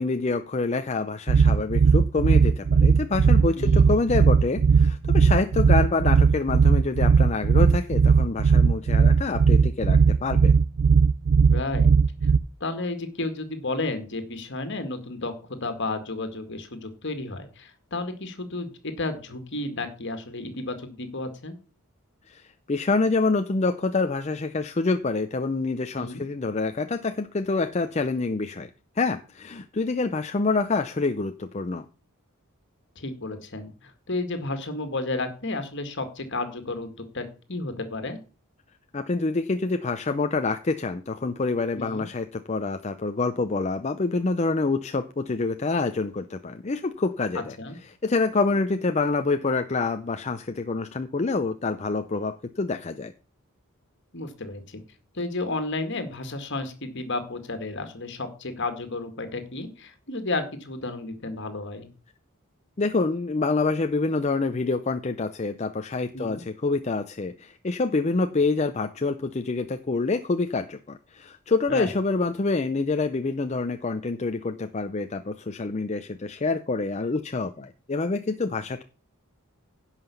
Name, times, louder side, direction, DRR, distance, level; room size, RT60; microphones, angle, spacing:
voice 1, 0.0-10.6 22.3-28.7 29.0-31.9 38.9-47.6 48.0-53.1 62.8-78.8, left 3 dB, 30° left, 8 dB, 0.5 m, -26 dB
sound 1, 1.3-12.4, right 5 dB, 80° right, 0.5 m, -18 dB
voice 2, 3.5-3.9 11.5-11.9 12.2-12.3 12.6-15.3 15.6-21.6 26.0-26.2 33.0-38.2 41.8-42.1 47.3-47.8 54.1-54.8 55.1-61.9 66.1-66.4 71.7-71.9, left 2 dB, 55° left, 8 dB, 2.0 m, -32 dB
11.0 x 5.8 x 7.0 m, 0.36 s
head